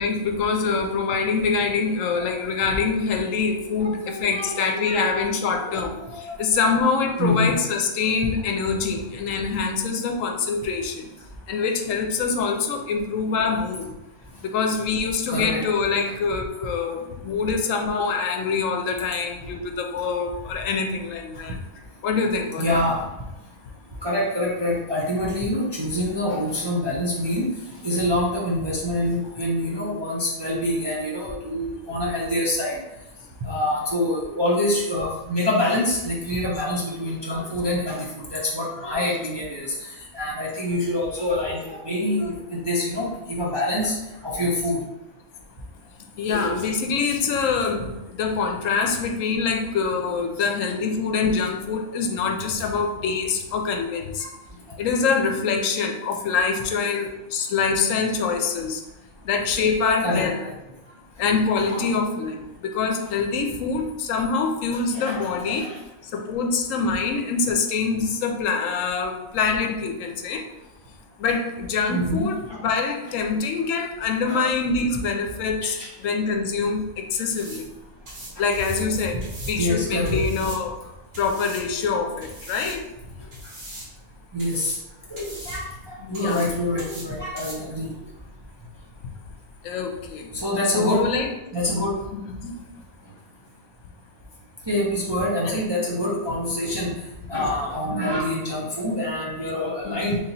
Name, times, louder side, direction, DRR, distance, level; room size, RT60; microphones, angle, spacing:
voice 1, 0.0-11.1 11.5-13.9 14.4-21.6 22.0-22.9 46.2-54.2 54.8-58.8 59.2-60.4 61.2-65.7 66.1-70.5 71.2-77.7 78.4-79.2 79.5-80.8 81.2-82.8 86.0-86.5 89.6-90.3 90.7-91.3 92.1-92.5 95.5-95.6 99.8-100.0, left 5 dB, 70° left, 4 dB, 0.9 m, -25 dB
voice 2, 3.8-5.0 5.5-6.2 7.2-7.6 15.3-15.6 16.1-16.2 22.6-23.0 24.0-27.5 27.7-32.8 33.4-39.7 40.1-44.0 44.2-44.8 50.4-50.5 54.2-54.3 60.0-60.5 61.7-61.8 63.0-63.1 64.9-65.8 71.9-72.6 74.3-74.5 75.6-75.9 79.6-80.2 84.3-84.7 85.1-87.9 90.3-91.1 91.5-91.9 94.7-96.9 97.3-100.2, left 1 dB, 40° right, -6 dB, 0.4 m, -26 dB
sound 1, 76.2-89.7, right 1 dB, 55° right, 1.4 m, -43 dB
3.3 x 2.8 x 4.0 m, 0.97 s
omnidirectional pair, 1.5 m